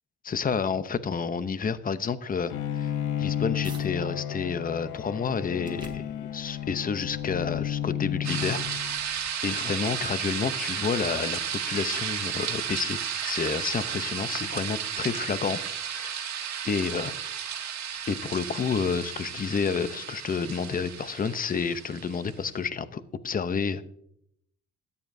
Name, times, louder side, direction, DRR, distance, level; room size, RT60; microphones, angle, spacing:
voice 1, 0.2-2.9 3.2-8.7 9.4-15.6 15.9-16.2 16.6-17.1 18.1-23.8, left 6 dB, 30° left, 14 dB, 0.7 m, -30 dB
Bowed string instrument, 2.5-9.2, left 10 dB, 90° left, 0.8 m, -32 dB
sound 1, 2.9-3.9 4.4-9.7, right 1 dB, 15° right, 2.7 m, -52 dB
sound 2, 8.2-22.3, right 8 dB, 65° right, 1.6 m, -33 dB
13.5 x 9.7 x 2.6 m, 0.73 s
cardioid pair, 90°, 30 cm